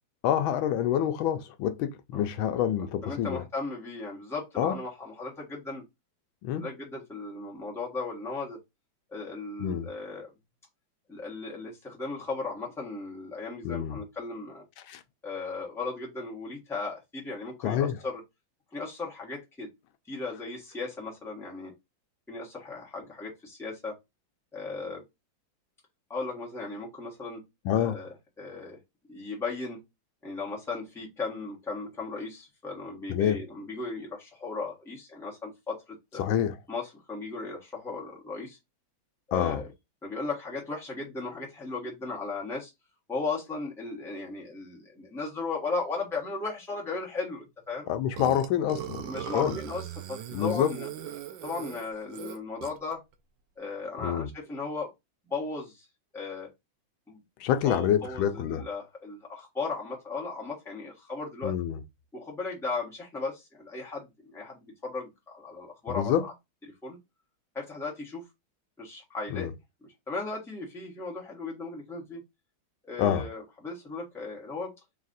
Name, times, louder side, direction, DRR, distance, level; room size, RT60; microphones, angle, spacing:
voice 1, 0.2-3.4 4.6-4.8 6.4-6.7 9.6-9.9 13.6-14.0 14.9-15.0 17.6-18.0 27.6-28.0 33.1-33.4 36.2-36.6 39.3-39.6 47.9-49.5 50.3-50.7 54.0-54.3 57.4-58.6 61.4-61.8 65.9-66.2 69.3-69.5 73.0-73.2, left 10 dB, 80° left, 1.4 m, -27 dB
voice 2, 3.0-5.8 6.5-8.6 9.1-10.3 11.1-14.6 15.2-18.2 18.7-19.7 20.1-21.7 22.3-23.9 24.5-25.0 26.1-27.4 27.7-28.8 29.1-29.8 30.2-36.2 36.7-38.6 39.3-39.7 40.0-42.7 43.1-47.9 49.0-50.9 51.4-53.0 53.6-54.9 55.2-55.9 56.1-56.5 57.1-57.2 57.6-61.5 62.1-66.3 66.8-67.0 67.5-68.2 68.8-69.5 70.1-72.2 72.8-74.7, left 3 dB, ahead, 1.0 m, -36 dB
Burping eructation, 48.2-52.9, right 10 dB, 75° right, 1.2 m, -39 dB
4.0 x 2.4 x 3.9 m
omnidirectional pair, 2.2 m